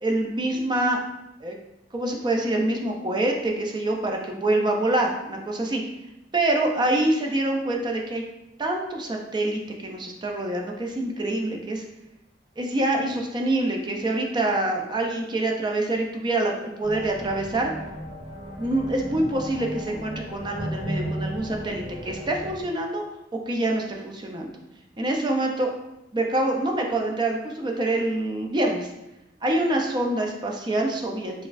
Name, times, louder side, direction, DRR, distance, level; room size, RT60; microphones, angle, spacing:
voice 1, 0.0-1.0 1.4-1.6 1.9-5.8 6.3-8.2 8.6-11.8 12.6-17.7 18.6-23.0 23.5-24.5 25.0-25.7 26.1-28.9 29.4-31.3, right 1 dB, 25° right, 1 dB, 0.4 m, -25 dB
sound 1, 16.8-22.6, equal, 45° right, 1.0 m, -35 dB
3.9 x 2.4 x 2.5 m, 0.92 s
head